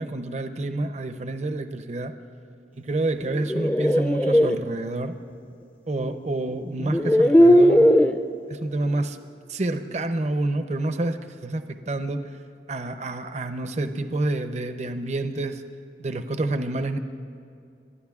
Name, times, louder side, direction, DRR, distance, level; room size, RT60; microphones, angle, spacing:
voice 1, 0.0-2.1 2.7-5.2 5.9-7.9 8.5-9.2 9.5-12.2 12.7-15.6 16.0-17.0, right 2 dB, 40° right, 9 dB, 0.6 m, -28 dB
sound 1, 3.2-4.6 6.0-6.1 6.8-8.2, equal, 10° left, 0.4 m, -17 dB
27.5 x 12.5 x 2.4 m, 2.5 s
head